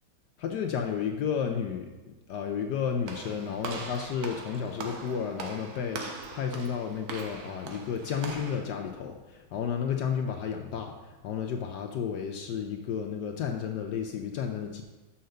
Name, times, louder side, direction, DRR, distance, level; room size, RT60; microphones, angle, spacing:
voice 1, 0.4-1.9 2.3-10.9 11.2-14.8, left 7 dB, 75° left, 3 dB, 1.0 m, -32 dB
Walk footsteps / Slam, 3.1-8.6, right 4 dB, 75° right, 1.7 m, -41 dB
5.7 x 5.7 x 6.6 m, 1.2 s
omnidirectional pair, 2.3 m